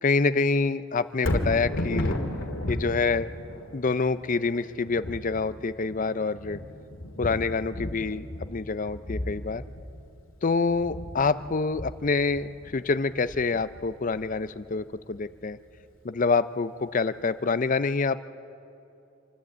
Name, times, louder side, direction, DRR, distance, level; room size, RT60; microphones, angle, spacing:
voice 1, 0.0-2.2 2.7-3.3 3.7-6.6 7.2-9.6 10.4-15.6 16.0-18.2, left 4 dB, 40° left, 14 dB, 0.5 m, -26 dB
Thunder, 1.1-15.3 15.8-15.9, left 1 dB, 80° left, 2.0 m, -35 dB
27.0 x 12.0 x 8.5 m, 2.7 s
head